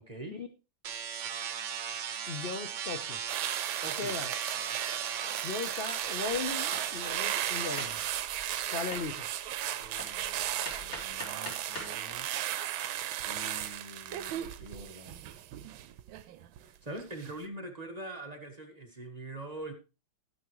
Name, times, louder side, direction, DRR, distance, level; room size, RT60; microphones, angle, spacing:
sound 1, 0.8-7.9, right 8 dB, 60° right, 1.4 m, -37 dB
voice 1, 2.3-3.2 4.0-4.3 5.4-8.0 8.7-9.3, left 5 dB, 50° left, 6 dB, 0.7 m, -37 dB
sound 2, 3.3-16.6 17.0-17.3, right 12 dB, 75° right, 1.5 m, -36 dB
voice 2, 3.8-4.2 9.8-12.3 13.2-15.2 16.6-19.7, right 2 dB, 20° right, 3 dB, 1.4 m, -44 dB
Hammer, 6.0-12.0, left 1 dB, 70° left, 4.1 m, -45 dB
13.0 x 9.6 x 3.1 m, 0.30 s
omnidirectional pair, 2.3 m